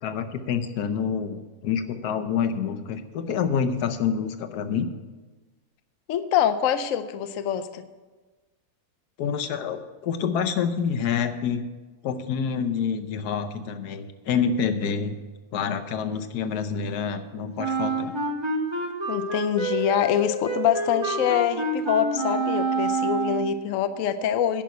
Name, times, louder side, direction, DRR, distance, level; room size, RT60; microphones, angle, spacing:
voice 1, 0.0-4.9 9.2-11.7 12.0-15.1 15.5-18.1, left 7 dB, 85° left, 9 dB, 1.4 m, -27 dB
voice 2, 6.1-7.8 19.1-24.6, left 9 dB, 65° left, 11 dB, 1.0 m, -25 dB
Wind instrument woodwind instrument, 17.6-23.6, right 3 dB, 20° right, 1.2 m, -27 dB
10.5 x 6.1 x 8.2 m, 1.2 s
omnidirectional pair, 1.6 m